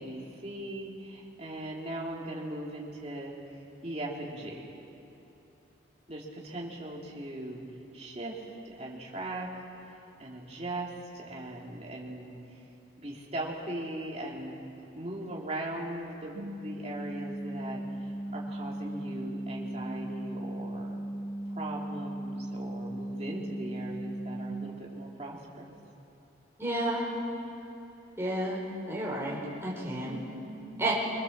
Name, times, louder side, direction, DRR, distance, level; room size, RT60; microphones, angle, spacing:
voice 1, 0.0-3.3 3.8-4.7 6.1-7.6 7.9-9.5 10.2-12.3 13.0-14.6 14.9-21.0 21.5-25.7 30.0-30.9, right 1 dB, 35° right, -3 dB, 3.2 m, -39 dB
sound 1, 16.4-24.5, right 1 dB, 60° right, 2.5 m, -37 dB
voice 2, 26.6-27.1 28.2-28.6 28.9-30.2 30.8-30.9, right 1 dB, 15° right, -5 dB, 4.6 m, -31 dB
25.0 x 21.0 x 7.4 m, 3.0 s
head